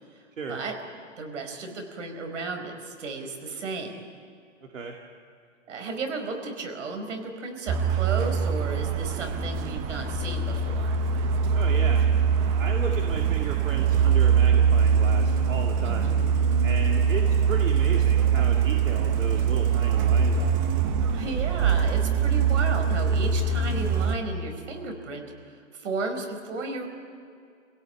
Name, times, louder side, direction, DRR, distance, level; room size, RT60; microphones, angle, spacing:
voice 1, 1.2-3.9 5.7-11.0 15.8-16.3 21.1-26.9, right 3 dB, 70° right, 5 dB, 4.8 m, -34 dB
Truck, 7.7-24.2, right 6 dB, 25° right, 1.0 m, -23 dB
voice 2, 11.5-12.0 12.6-16.1 16.6-20.6, right 5 dB, 90° right, 1 dB, 2.4 m, -35 dB
26.5 x 17.0 x 8.7 m, 2.4 s
hypercardioid pair, 155°, 38 cm